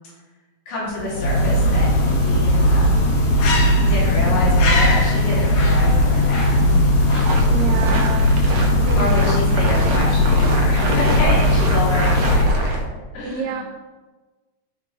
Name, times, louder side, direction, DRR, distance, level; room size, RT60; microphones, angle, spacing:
voice 1, 0.7-2.9 3.8-6.6 8.9-12.8 13.1-13.6, left 1 dB, 85° left, -7 dB, 4.3 m, -28 dB
sound 1, 0.9-12.7, left 1 dB, 65° left, 2.7 m, -17 dB
sound 2, 7.0-12.8, right 1 dB, 65° right, 1.7 m, -26 dB
voice 2, 7.5-8.3 8.7-9.5 13.2-13.6, right 5 dB, 90° right, 4 dB, 2.5 m, -29 dB
11.0 x 3.9 x 4.7 m, 1.2 s
omnidirectional pair, 3.8 m